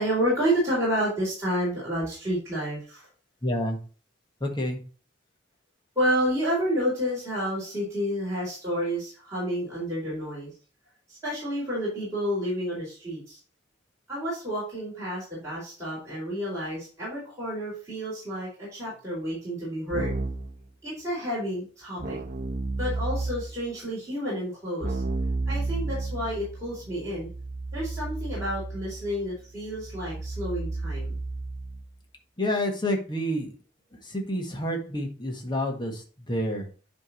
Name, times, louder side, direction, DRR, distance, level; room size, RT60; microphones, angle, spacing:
voice 1, 0.0-3.1 6.0-10.5 11.1-13.4 14.1-20.1 20.8-22.2 22.8-25.0 25.5-27.3 27.7-31.2, equal, 15° right, -8 dB, 4.3 m, -30 dB
voice 2, 3.4-3.8 4.4-4.8 32.4-33.5 34.0-36.0 36.3-36.6, left 1 dB, 25° left, 2 dB, 1.5 m, -28 dB
Keyboard (musical), 19.9-20.6 22.0-23.6 24.8-31.9, right 2 dB, 40° right, 0.9 m, -32 dB
10.0 x 3.5 x 4.4 m, 0.38 s
head